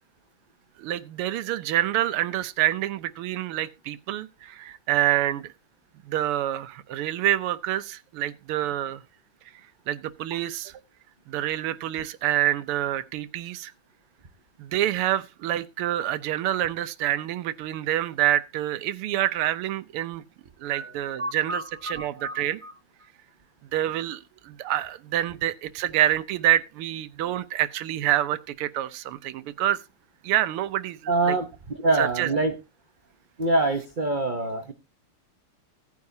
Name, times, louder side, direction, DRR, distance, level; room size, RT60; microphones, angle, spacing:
voice 1, 0.8-5.5 6.0-9.0 9.9-10.8 11.3-13.7 14.6-20.2 20.6-22.6 23.7-29.8 30.2-31.4 32.0-32.4, right 13 dB, 80° right, 1.7 m, -27 dB
voice 2, 20.7-21.6 21.9-22.7 31.1-31.5 31.8-32.5 33.4-34.7, right 2 dB, 45° right, 0.6 m, -26 dB
16.5 x 9.6 x 2.7 m
omnidirectional pair, 2.4 m